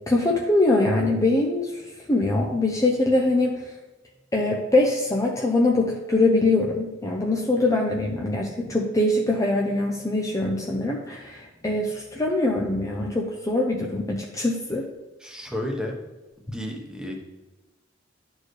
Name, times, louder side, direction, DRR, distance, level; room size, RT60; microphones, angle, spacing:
voice 1, 0.1-1.8 2.1-3.6 4.3-14.9, left 2 dB, 20° left, -1 dB, 0.6 m, -23 dB
voice 2, 15.2-15.9 16.5-17.2, left 1 dB, 5° right, 0 dB, 1.0 m, -31 dB
11.0 x 4.4 x 3.2 m, 1.1 s
head